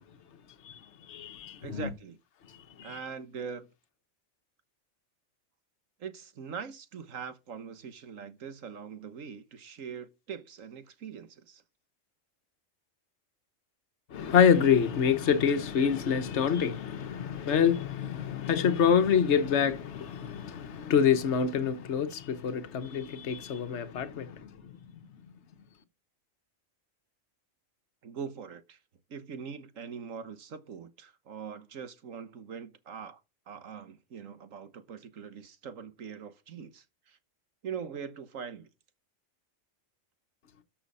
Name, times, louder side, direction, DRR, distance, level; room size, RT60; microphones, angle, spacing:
voice 1, 1.1-1.9 2.8-3.0 14.1-25.1, left 7 dB, 60° left, 1.3 m, -26 dB
voice 2, 1.6-2.2 2.8-3.7 6.0-11.6 28.0-28.8 29.1-33.2 33.5-37.2 37.6-38.7, right 6 dB, 75° right, 1.6 m, -42 dB
13.0 x 6.3 x 5.5 m
omnidirectional pair, 1.4 m